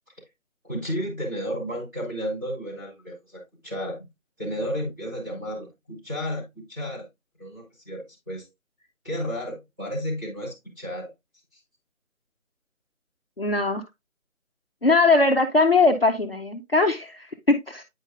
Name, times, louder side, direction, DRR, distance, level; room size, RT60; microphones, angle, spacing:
voice 1, 0.6-4.1 4.4-7.1 7.4-8.5 9.0-11.1 11.5-11.6, equal, 15° right, 3.4 m, -32 dB
voice 2, 13.4-13.8 14.8-17.8, left 3 dB, 45° left, 0.6 m, -20 dB
9.1 x 5.2 x 2.5 m
figure-of-eight pair, 180°, 41 cm